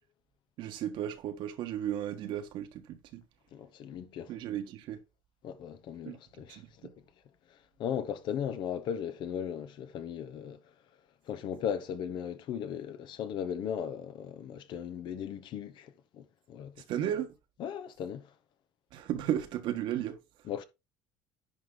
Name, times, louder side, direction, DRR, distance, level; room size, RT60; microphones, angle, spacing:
voice 1, 0.6-3.2 4.3-5.0 6.0-6.9 16.8-17.3 18.9-20.2, right 11 dB, 65° right, 1.5 m, -35 dB
voice 2, 3.5-4.3 5.4-6.9 7.8-10.6 11.3-16.8 17.6-18.3 20.5-20.6, left 8 dB, 60° left, 1.1 m, -37 dB
10.5 x 4.7 x 3.9 m
supercardioid pair, 100°, 9 cm